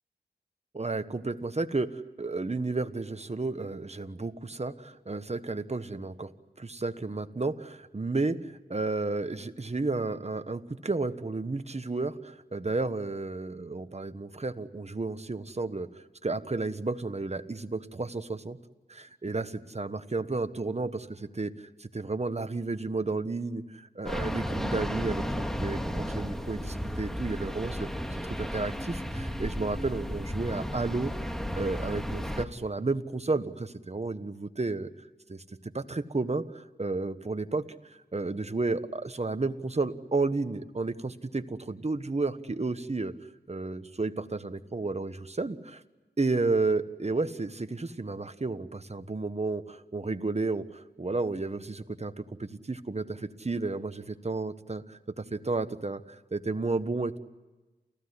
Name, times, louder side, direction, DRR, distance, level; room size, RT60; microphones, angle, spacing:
voice 1, 0.7-6.3 6.6-15.9 16.2-18.6 18.9-21.5 21.8-31.1 31.6-34.9 35.3-37.6 38.1-43.1 43.5-45.8 46.2-57.2, right 3 dB, 35° right, 10 dB, 1.4 m, -32 dB
sound 1, 24.1-32.5, equal, ahead, 2.0 m, -33 dB
29.0 x 15.5 x 9.9 m, 1.2 s
cardioid pair, 50°, 19 cm